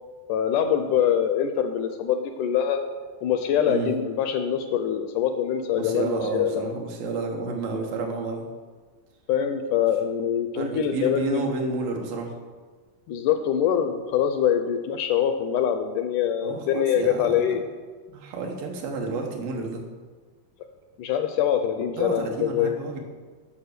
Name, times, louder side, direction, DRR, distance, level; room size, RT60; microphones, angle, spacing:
voice 1, 0.3-2.8 3.2-6.6 9.3-11.5 13.1-17.6 21.0-22.8, left 9 dB, 80° left, 7 dB, 1.9 m, -24 dB
voice 2, 5.7-8.4 10.5-12.3 16.4-17.6 18.1-19.8 22.0-23.0, right 3 dB, 80° right, 1 dB, 3.0 m, -30 dB
9.6 x 5.8 x 6.6 m, 1.4 s
omnidirectional pair, 3.9 m